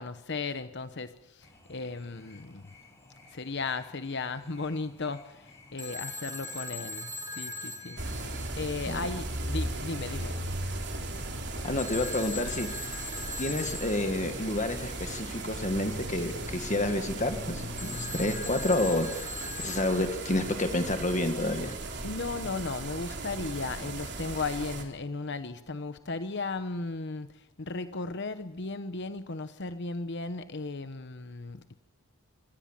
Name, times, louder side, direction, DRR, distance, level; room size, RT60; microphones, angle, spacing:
voice 1, 0.0-2.6 3.3-10.3 22.0-27.3 27.6-31.8, left 3 dB, 50° left, 11 dB, 1.0 m, -36 dB
sound 1, 1.4-18.5, left 1 dB, 15° left, 6.2 m, -49 dB
Telephone, 5.8-8.9 11.8-14.3 17.8-20.4, left 1 dB, 15° right, 2.1 m, -40 dB
sound 2, 8.0-24.8, right 2 dB, 50° right, 3.6 m, -37 dB
voice 2, 11.6-12.9 13.4-19.3 19.6-21.8, left 1 dB, 35° left, 7 dB, 1.8 m, -29 dB
26.0 x 19.0 x 7.4 m, 0.94 s
head